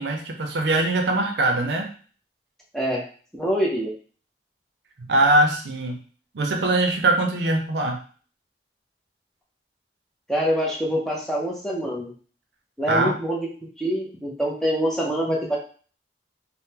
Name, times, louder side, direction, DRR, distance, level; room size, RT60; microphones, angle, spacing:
voice 1, 0.0-1.9 5.0-6.0 6.3-8.0 12.9-13.1, right 2 dB, 80° right, 4 dB, 0.5 m, -22 dB
voice 2, 3.3-3.9 10.3-12.1 12.8-13.5 13.8-15.6, equal, ahead, -4 dB, 0.5 m, -25 dB
3.5 x 2.1 x 2.8 m, 0.42 s
head